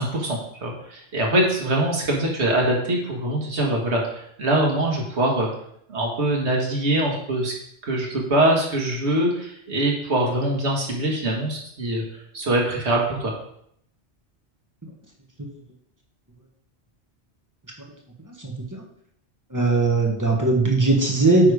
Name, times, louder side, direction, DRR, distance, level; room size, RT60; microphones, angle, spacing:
voice 1, 0.0-5.5 5.9-7.5 7.8-13.3, right 1 dB, 75° right, -1 dB, 1.9 m, -23 dB
voice 2, 18.3-18.8 19.5-21.5, right 2 dB, 15° right, -1 dB, 1.3 m, -20 dB
9.1 x 3.4 x 4.9 m, 0.70 s
omnidirectional pair, 1.1 m